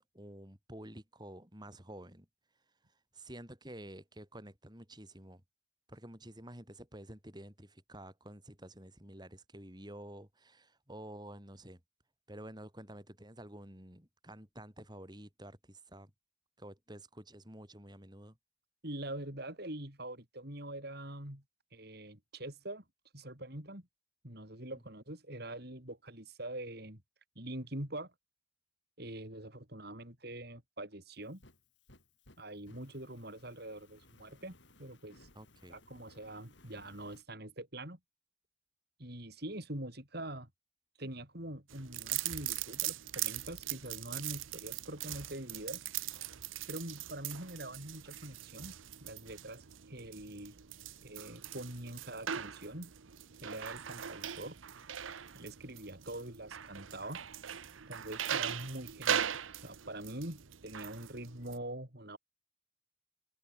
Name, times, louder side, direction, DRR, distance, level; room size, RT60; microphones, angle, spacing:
voice 1, 0.0-2.3 3.1-5.4 5.9-11.8 12.3-16.1 16.6-18.4 35.3-35.8, right 1 dB, 20° right, 6.5 m, -50 dB
voice 2, 18.8-21.4 21.7-22.8 23.1-23.8 24.2-27.0 27.4-28.1 29.0-31.4 32.4-34.5 34.8-35.3 35.7-38.0 39.0-40.5 41.0-45.8 46.7-48.7 49.0-50.6 51.0-52.9 53.4-54.6 55.3-57.2 57.9-62.2, right 1 dB, 55° right, 6.1 m, -44 dB
Fire, 31.1-37.2, left 2 dB, 65° left, 7.6 m, -62 dB
sound 1, 41.7-61.6, right 10 dB, 90° right, 0.9 m, -40 dB
open air
head